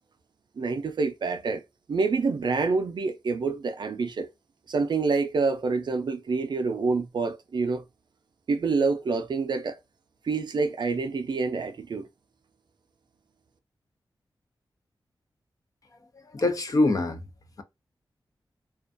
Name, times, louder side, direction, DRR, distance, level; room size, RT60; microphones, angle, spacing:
voice 1, 0.6-1.6 1.9-4.3 4.7-7.8 8.5-9.8 10.2-12.1, right 4 dB, 60° right, 0.4 m, -27 dB
voice 2, 16.1-17.2, left 2 dB, 45° left, 0.5 m, -24 dB
2.4 x 2.2 x 2.5 m
wide cardioid pair, 95°, 8 cm